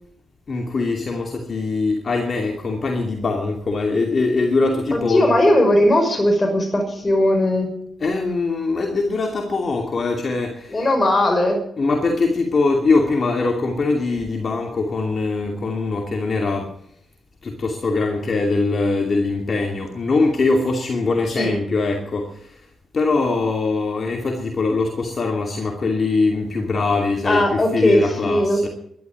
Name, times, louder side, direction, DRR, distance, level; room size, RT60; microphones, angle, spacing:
voice 1, 0.5-5.4 8.0-10.9 11.8-16.7 17.4-22.7 22.9-28.7, left 3 dB, 50° left, 2.6 m, -22 dB
voice 2, 4.9-7.7 10.7-11.6 21.3-21.5 27.2-28.7, left 1 dB, 30° left, 5.8 m, -18 dB
12.5 x 12.5 x 9.3 m
supercardioid pair, 50°, 0 cm